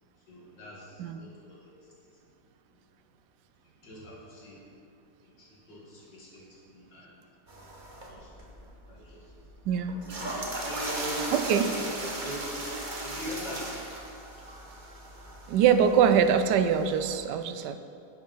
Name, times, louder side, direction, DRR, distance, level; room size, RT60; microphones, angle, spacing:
voice 1, 0.3-1.7 3.6-4.7 5.2-7.2 8.1-8.5 8.9-9.3 10.6-12.7 13.0-13.9, equal, 75° left, -5 dB, 2.9 m, -41 dB
sound 1, 7.5-17.2, right 2 dB, 30° right, 1.3 m, -38 dB
voice 2, 9.7-10.0 11.3-11.7 15.5-17.8, right 7 dB, 75° right, 9 dB, 1.2 m, -23 dB
10.5 x 6.6 x 5.6 m, 2.5 s
omnidirectional pair, 1.9 m